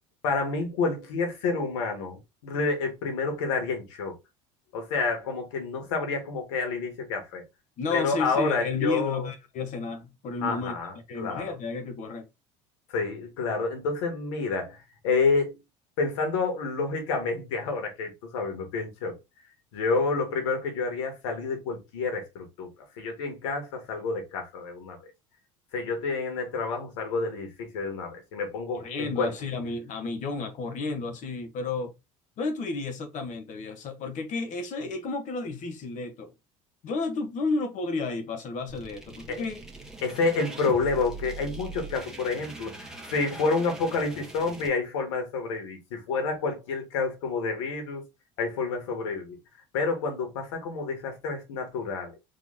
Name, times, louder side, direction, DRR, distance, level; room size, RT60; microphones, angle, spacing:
voice 1, 0.2-4.2 4.7-7.4 7.9-9.3 10.4-11.6 12.9-15.6 16.0-19.2 19.7-25.0 25.7-29.3 39.3-39.5 40.0-48.1 48.4-49.4 49.7-52.1, left 4 dB, 80° left, 2.0 m, -29 dB
voice 2, 7.8-10.7 11.1-12.2 28.7-31.9 32.4-36.3 36.8-39.6, left 3 dB, 50° left, 1.3 m, -32 dB
sound 1, 38.7-44.7, right 3 dB, 5° right, 1.4 m, -42 dB
4.1 x 3.3 x 3.5 m
supercardioid pair, 90°, 16 cm